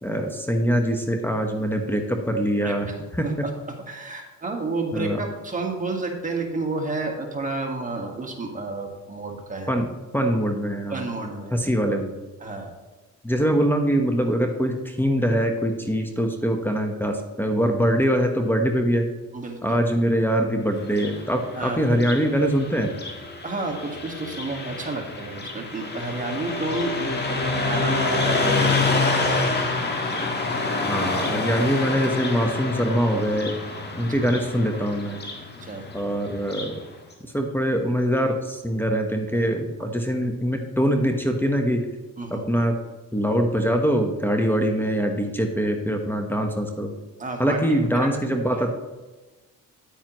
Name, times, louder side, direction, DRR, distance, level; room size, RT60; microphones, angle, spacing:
voice 1, 0.0-3.3 4.9-5.2 9.7-11.1 11.5-12.1 13.2-19.1 19.6-22.9 30.9-33.6 34.0-35.2 35.9-36.7 37.3-41.8 42.3-42.7 43.1-46.9 47.4-48.7, equal, 5° left, 4 dB, 1.1 m, -23 dB
voice 2, 2.6-2.9 3.2-9.8 10.9-11.7 12.4-12.7 19.3-19.8 21.5-21.9 23.4-29.4 35.6-35.9 39.8-39.9 42.2-42.5 47.2-47.6 47.9-48.6, right 2 dB, 25° right, 2 dB, 1.6 m, -31 dB
Car passing by, 20.8-36.8, left 3 dB, 35° left, 1.6 m, -27 dB
9.1 x 9.0 x 3.0 m, 1.2 s
cardioid pair, 90°, 30 cm